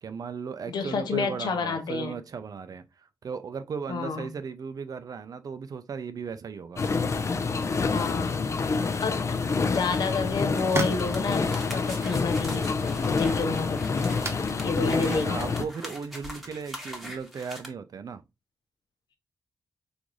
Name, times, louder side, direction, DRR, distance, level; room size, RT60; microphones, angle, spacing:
voice 1, 0.0-6.8 14.8-18.2, right 6 dB, 60° right, 0.5 m, -36 dB
voice 2, 0.7-2.2 3.9-4.3 7.9-8.5 9.0-14.1 14.6-15.6, left 4 dB, 80° left, 0.8 m, -30 dB
sound 1, 6.8-15.6, left 4 dB, 40° left, 0.4 m, -27 dB
sound 2, 9.8-17.1, right 3 dB, 35° right, 0.8 m, -40 dB
sound 3, 10.6-17.7, equal, ahead, 1.0 m, -42 dB
3.8 x 2.5 x 3.0 m
cardioid pair, 90°, 7 cm